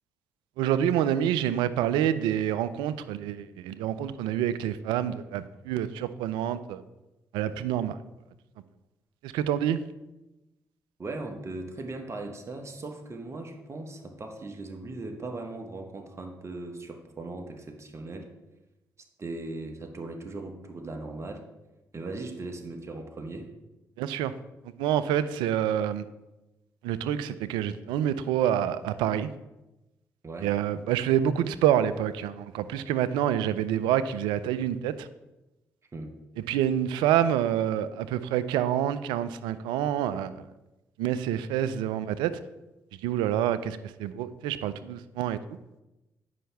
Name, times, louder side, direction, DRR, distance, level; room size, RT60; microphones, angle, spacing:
voice 1, 0.6-6.8 7.3-8.0 9.2-9.8 24.0-24.3 24.8-26.1 26.8-29.3 30.4-35.1 36.5-40.4 41.0-42.4 43.0-45.4, right 10 dB, 75° right, 14 dB, 0.4 m, -27 dB
voice 2, 11.0-18.3 19.0-21.4 21.9-23.5 30.2-30.5 35.9-36.1, right 2 dB, 35° right, 4 dB, 1.2 m, -38 dB
9.2 x 5.6 x 3.4 m, 1.0 s
hypercardioid pair, 45°, 8 cm